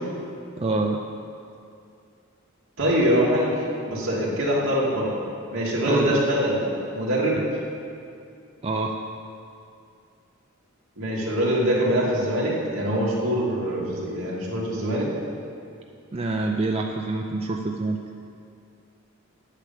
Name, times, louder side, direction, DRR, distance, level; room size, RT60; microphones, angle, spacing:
voice 1, 0.6-1.0 5.8-6.2 7.3-7.4 8.6-9.0 16.1-18.0, right 2 dB, 30° right, 2 dB, 0.4 m, -26 dB
voice 2, 2.8-3.5 3.9-5.1 5.5-6.6 6.9-7.4 11.0-15.1, equal, 70° right, -5 dB, 2.6 m, -23 dB
8.8 x 8.3 x 7.1 m, 2.5 s
head